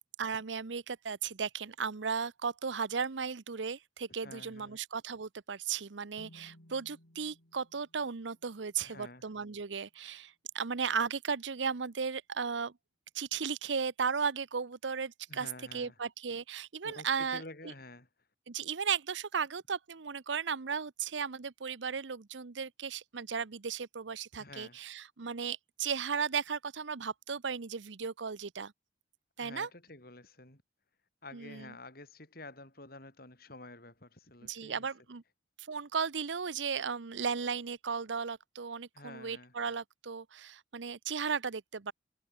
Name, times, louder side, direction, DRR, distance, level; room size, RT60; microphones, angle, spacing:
voice 1, 0.2-12.7 13.1-17.7 18.5-28.7 29.4-29.7 31.3-31.7 34.5-35.2 35.6-41.9, right 6 dB, 85° right, 0.8 m, -35 dB
voice 2, 4.2-4.8 8.8-9.3 15.3-16.0 16.8-18.1 24.4-24.8 29.4-30.6 31.2-34.9 38.9-39.5, left 2 dB, 55° left, 5.5 m, -50 dB
sound 1, 6.2-9.7, equal, 90° left, 5.4 m, -61 dB
head